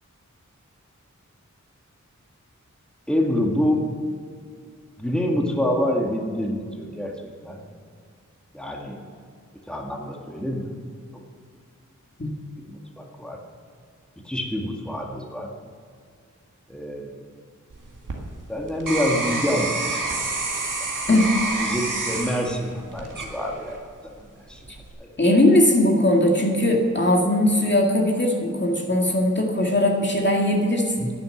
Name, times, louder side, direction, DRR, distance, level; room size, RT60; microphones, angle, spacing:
voice 1, 3.1-3.8 5.0-7.6 8.5-9.0 9.7-10.7 12.7-13.4 14.2-15.5 16.7-17.2 18.5-20.0 21.6-23.8 24.0-24.2 24.5-24.6 25.0-25.1, equal, 5° left, 0 dB, 1.9 m, -26 dB
sound 1, 17.7-23.9 24.4-24.9, right 3 dB, 90° right, 1.9 m, -29 dB
voice 2, 25.2-31.1, left 1 dB, 35° left, 0 dB, 2.1 m, -19 dB
11.0 x 9.4 x 7.8 m, 2.1 s
wide cardioid pair, 40°, 31 cm